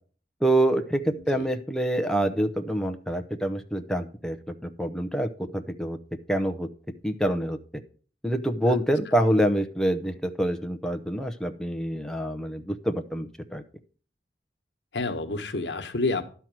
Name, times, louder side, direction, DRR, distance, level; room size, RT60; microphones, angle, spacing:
voice 1, 0.4-4.4 4.8-6.0 6.3-6.7 7.0-7.6 8.2-13.6, right 1 dB, 5° left, 7 dB, 0.6 m, -26 dB
voice 2, 1.1-1.5 8.7-8.8 14.9-16.2, left 3 dB, 85° left, 7 dB, 1.2 m, -29 dB
11.5 x 4.6 x 7.4 m, 0.42 s
head